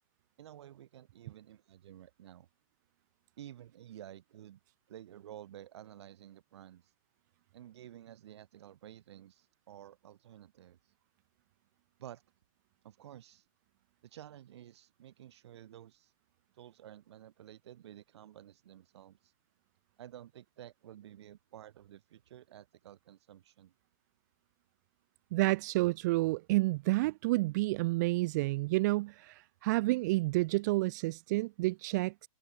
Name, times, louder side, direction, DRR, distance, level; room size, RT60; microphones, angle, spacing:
voice 1, 0.4-2.5 3.4-4.6 4.9-6.9 7.5-10.8 12.0-12.2 12.8-13.4 14.0-16.1 16.6-19.3 20.0-23.7, right 11 dB, 50° right, 7.1 m, -52 dB
voice 2, 25.3-32.3, right 21 dB, 30° right, 1.1 m, -30 dB
hypercardioid pair, 155°, 18 cm